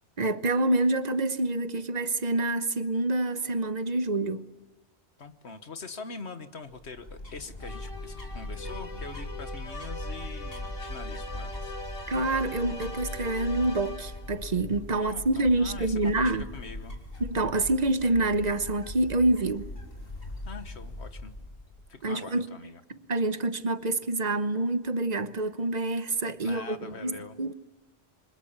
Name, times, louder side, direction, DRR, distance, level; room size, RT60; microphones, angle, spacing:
voice 1, 0.2-4.5 12.1-16.5 17.3-19.7 22.0-22.5 23.1-27.5, right 2 dB, 40° right, 1.1 m, -27 dB
voice 2, 5.2-11.7 14.9-17.0 20.4-21.3 21.9-22.8 26.4-27.4, left 4 dB, 75° left, 1.7 m, -43 dB
sound 1, 6.7-21.9, left 1 dB, 60° left, 3.6 m, -40 dB
sound 2, 7.6-14.4, left 2 dB, 30° left, 1.7 m, -42 dB
28.5 x 25.5 x 7.3 m
omnidirectional pair, 1.1 m